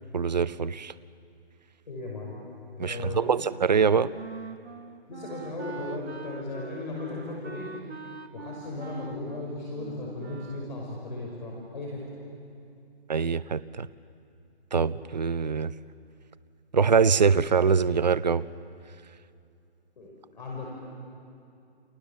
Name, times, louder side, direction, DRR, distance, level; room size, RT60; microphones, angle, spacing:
voice 1, 0.1-0.9 2.8-4.1 13.1-13.9 14.7-15.7 16.7-18.4, right 6 dB, 40° right, 15 dB, 0.6 m, -23 dB
voice 2, 1.9-2.4 2.8-3.4 5.1-7.7 8.3-12.0 20.0-20.7, left 2 dB, 45° left, -2 dB, 5.9 m, -36 dB
Wind instrument woodwind instrument, 3.7-10.8, right 4 dB, 85° right, 1.6 m, -43 dB
29.5 x 27.5 x 7.3 m, 2.5 s
hypercardioid pair, 180°, 32 cm